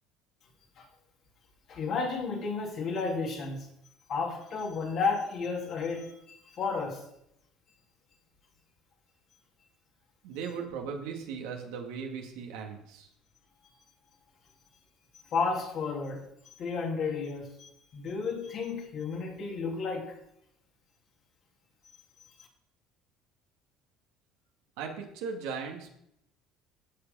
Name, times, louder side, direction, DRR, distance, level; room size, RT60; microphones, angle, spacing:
voice 1, 1.7-3.7 4.1-7.1 15.3-16.3 16.6-20.2 22.2-22.3, left 4 dB, 55° left, 2.9 m, -32 dB
voice 2, 10.2-13.1 24.8-25.9, right 6 dB, 80° right, 2.1 m, -38 dB
15.0 x 5.1 x 5.5 m
supercardioid pair, 80°, 0 cm